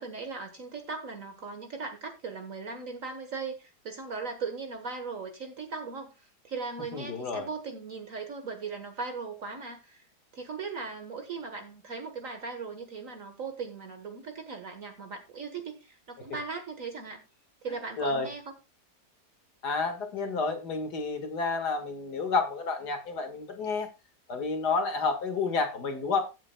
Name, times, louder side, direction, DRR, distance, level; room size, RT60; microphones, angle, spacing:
voice 1, 0.0-10.1 10.3-17.2 17.6-18.5, right 4 dB, 55° right, 6 dB, 1.6 m, -38 dB
voice 2, 6.9-7.5 18.0-18.3 19.6-23.9 24.3-26.2, left 4 dB, 75° left, 6 dB, 2.3 m, -30 dB
15.0 x 8.3 x 2.2 m, 0.27 s
omnidirectional pair, 1.8 m